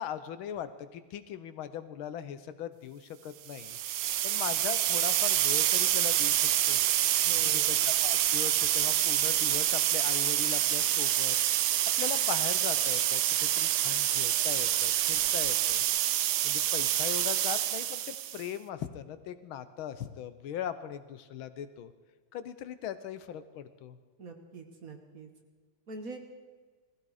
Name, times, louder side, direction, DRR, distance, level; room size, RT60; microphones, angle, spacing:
voice 1, 0.0-3.8 4.2-6.8 7.7-11.4 12.0-15.8 16.4-21.9 22.3-24.0, left 9 dB, 80° left, 12 dB, 1.6 m, -39 dB
sound 1, 3.5-18.5, right 12 dB, 70° right, 1.0 m, -27 dB
voice 2, 7.2-7.9 24.2-25.3 25.9-26.2, right 3 dB, 45° right, 4 dB, 1.7 m, -44 dB
19.5 x 15.0 x 4.9 m, 1.5 s
omnidirectional pair, 2.3 m